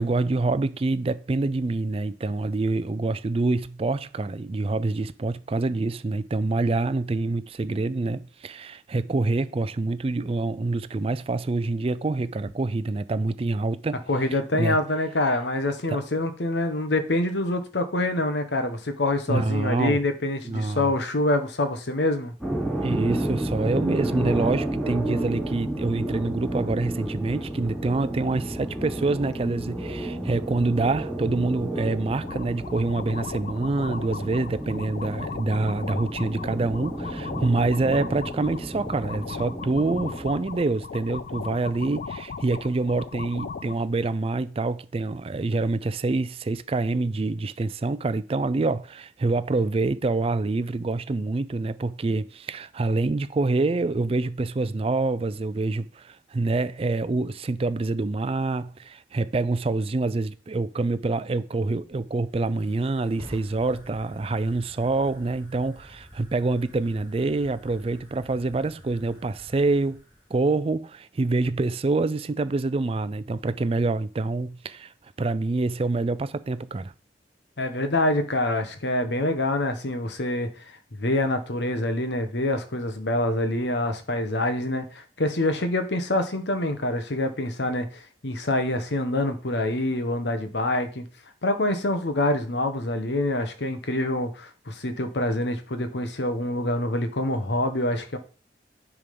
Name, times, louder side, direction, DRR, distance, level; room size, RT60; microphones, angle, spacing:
voice 1, 0.0-14.0 14.3-14.8 15.9-16.0 19.3-20.0 20.4-20.9 22.8-70.0 70.3-74.9 75.2-76.9, right 3 dB, 30° right, 0.4 m, -26 dB
voice 2, 14.1-22.3 77.6-80.5 80.9-91.0 91.4-98.2, left 1 dB, 75° left, 1.1 m, -26 dB
sound 1, 22.4-40.3, right 1 dB, 5° left, 4.2 m, -32 dB
sound 2, 32.2-43.7, left 5 dB, 50° left, 0.4 m, -37 dB
Fire, 62.0-70.6, equal, 25° left, 2.6 m, -49 dB
9.8 x 3.6 x 5.2 m
head